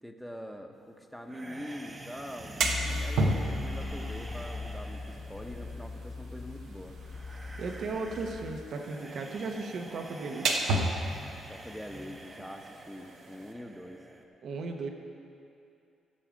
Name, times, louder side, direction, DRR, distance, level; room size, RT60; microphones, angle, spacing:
voice 1, 0.0-7.0 11.5-14.0, equal, ahead, 4 dB, 1.0 m, -44 dB
sound 1, 1.3-14.2, right 2 dB, 25° right, 1.0 m, -48 dB
sound 2, 2.3-13.5, right 2 dB, 85° right, 1.2 m, -35 dB
sound 3, 2.6-8.5, left 3 dB, 50° left, 1.4 m, -39 dB
voice 2, 7.6-10.6 14.4-14.9, right 3 dB, 65° right, 4 dB, 1.1 m, -36 dB
15.5 x 6.9 x 5.2 m, 2.6 s
cardioid pair, 90°, 0 cm